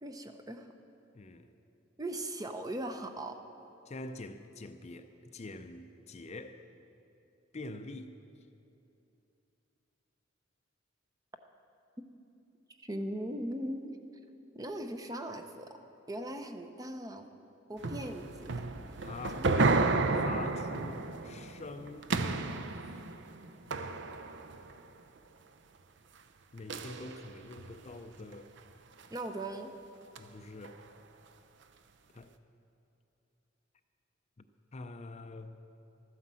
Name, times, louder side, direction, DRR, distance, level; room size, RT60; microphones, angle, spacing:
voice 1, 0.0-0.7 2.0-3.4 12.8-13.9 14.5-15.8 16.1-17.3 17.7-18.6 19.4-19.5 29.1-29.7, right 1 dB, 20° right, 6 dB, 0.7 m, -39 dB
voice 2, 1.1-1.5 3.9-6.6 7.5-8.1 19.0-23.0 26.5-28.5 30.2-30.8 32.1-32.3 34.4-34.5 34.7-35.6, left 2 dB, 35° left, 8 dB, 0.5 m, -45 dB
sound 1, 17.8-24.8 26.7-27.7 28.3-28.6 29.0-29.1 30.2-30.3 30.6-30.7, right 3 dB, 65° right, 0.6 m, -32 dB
13.0 x 9.4 x 7.5 m, 2.8 s
head